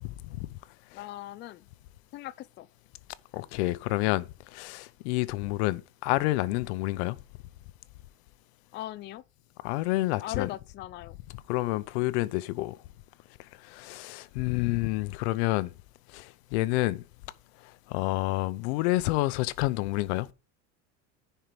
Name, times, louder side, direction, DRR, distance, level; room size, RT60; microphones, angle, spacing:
voice 1, 0.0-0.6 0.9-1.0 3.3-7.2 9.6-10.5 11.5-12.8 13.6-15.7 16.1-17.0 17.9-20.3, left 19 dB, 90° left, 0.8 m, -29 dB
voice 2, 0.9-1.6 2.1-2.7 8.7-9.2 10.2-11.2, left 14 dB, 35° left, 0.4 m, -38 dB
10.0 x 4.6 x 5.1 m
cardioid pair, 145°, 33 cm